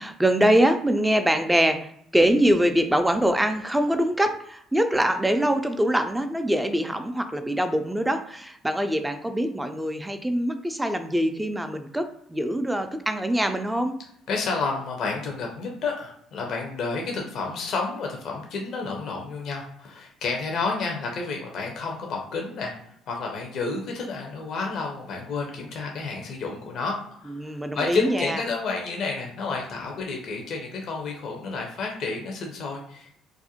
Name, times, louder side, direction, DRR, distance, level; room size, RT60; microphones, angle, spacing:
voice 1, 0.0-13.9 27.3-28.4, right 1 dB, 10° right, 7 dB, 0.3 m, -23 dB
voice 2, 14.3-22.8 23.1-33.1, left 4 dB, 60° left, 1 dB, 0.5 m, -30 dB
2.4 x 2.1 x 2.8 m, 0.71 s
supercardioid pair, 70°, 0 cm